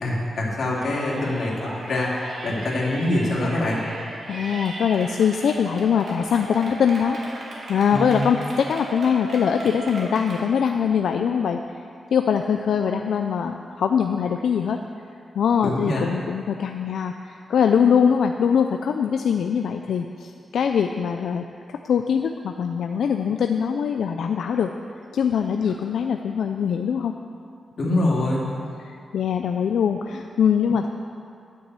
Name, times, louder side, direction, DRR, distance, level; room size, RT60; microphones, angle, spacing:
voice 1, 0.0-2.1 2.4-3.8 7.9-8.2 15.6-16.0 27.8-28.4, left 1 dB, 60° left, -4 dB, 2.8 m, -24 dB
Yell, 0.7-10.4, right 1 dB, 65° right, 2.6 m, -36 dB
voice 2, 4.3-7.2 7.7-11.6 12.1-14.8 15.3-24.7 25.1-27.1 27.8-28.1 28.8-30.9, left 7 dB, 85° left, 5 dB, 0.4 m, -22 dB
12.0 x 6.4 x 8.2 m, 2.4 s
wide cardioid pair, 130°, 0 cm